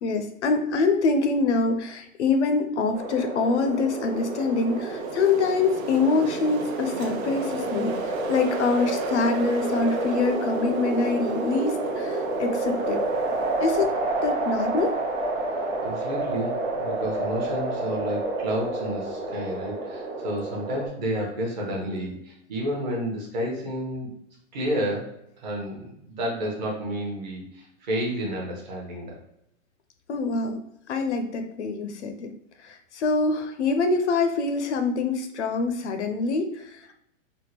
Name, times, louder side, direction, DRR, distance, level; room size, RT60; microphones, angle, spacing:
voice 1, 0.0-13.0 13.6-13.9 14.2-15.0 30.1-30.6 30.9-32.3 32.6-36.9, left 4 dB, 60° left, 6 dB, 0.5 m, -25 dB
sound 1, 2.9-20.9, right 2 dB, 60° right, 0.9 m, -29 dB
Wind, 3.9-13.8, right 6 dB, 90° right, 0.6 m, -42 dB
voice 2, 15.8-24.1 24.5-29.2, equal, 35° right, -2 dB, 0.9 m, -31 dB
3.5 x 2.2 x 2.8 m, 0.77 s
hypercardioid pair, 175°, 40 cm